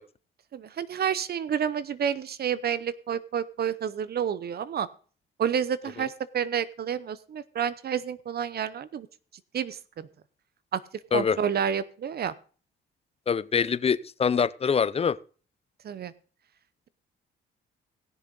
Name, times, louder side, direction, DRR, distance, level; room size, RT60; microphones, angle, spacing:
voice 1, 0.5-4.9 5.4-9.1 9.5-10.1 10.7-10.8 11.1-12.3 15.8-16.1, right 8 dB, 50° right, 0.7 m, -29 dB
voice 2, 13.3-15.2, left 6 dB, 30° left, 0.6 m, -24 dB
17.5 x 6.9 x 3.9 m
cardioid pair, 90°, 20 cm